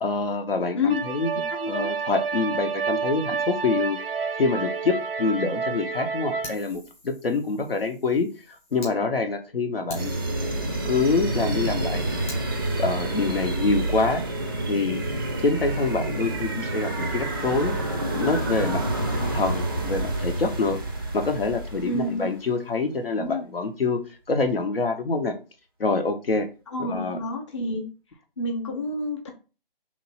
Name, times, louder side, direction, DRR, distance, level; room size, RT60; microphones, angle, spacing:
voice 1, 0.0-1.4 1.7-4.0 4.4-8.3 8.7-10.1 10.8-12.0 12.8-14.2 14.7-15.0 15.4-17.7 18.2-18.8 19.1-20.8 21.1-24.0 24.3-25.3 25.8-26.5 26.8-27.2, left 4 dB, 80° left, 6 dB, 0.8 m, -26 dB
sound 1, 0.9-6.5, right 5 dB, 80° right, 0.5 m, -29 dB
voice 2, 1.3-1.9 21.8-22.3 23.1-23.5 26.7-27.9 28.4-29.3, left 2 dB, 30° left, 3 dB, 0.6 m, -29 dB
Fire, 6.4-8.9 9.4-9.5 9.9-12.4, left 1 dB, 15° left, 0.9 m, -45 dB
sound 2, 9.9-22.3, right 2 dB, 25° right, 0.4 m, -28 dB
3.0 x 2.6 x 4.1 m, 0.33 s
figure-of-eight pair, 155°, 29 cm